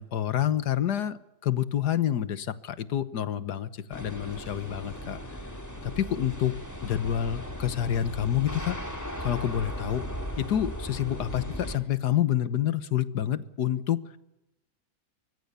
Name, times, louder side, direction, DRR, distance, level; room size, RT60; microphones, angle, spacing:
voice 1, 0.0-5.2 5.8-6.5 6.8-8.8 9.2-10.0 10.4-14.0, left 11 dB, 90° left, 15 dB, 1.7 m, -28 dB
sound 1, 3.9-11.8, equal, 10° left, 3.4 m, -37 dB
24.0 x 22.5 x 7.0 m, 0.90 s
omnidirectional pair, 1.7 m